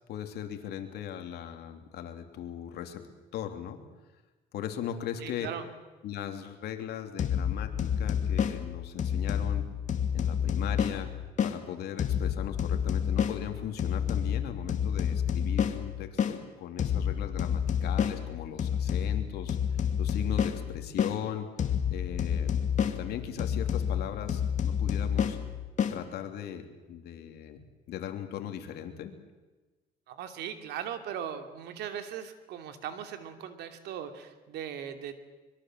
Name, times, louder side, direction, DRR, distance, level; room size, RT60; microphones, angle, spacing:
voice 1, 0.1-3.0 3.3-3.8 4.5-5.5 6.0-9.7 10.1-11.1 11.4-21.5 21.9-25.4 25.9-29.2, left 10 dB, 75° left, 6 dB, 3.0 m, -38 dB
voice 2, 5.2-5.7 30.1-35.1, right 9 dB, 80° right, 7 dB, 2.7 m, -39 dB
sound 1, 7.2-11.6 12.0-16.4 16.8-21.2 21.6-26.0, left 8 dB, 45° left, 2.3 m, -29 dB
25.0 x 22.5 x 7.6 m, 1.2 s
cardioid pair, 110°, 17 cm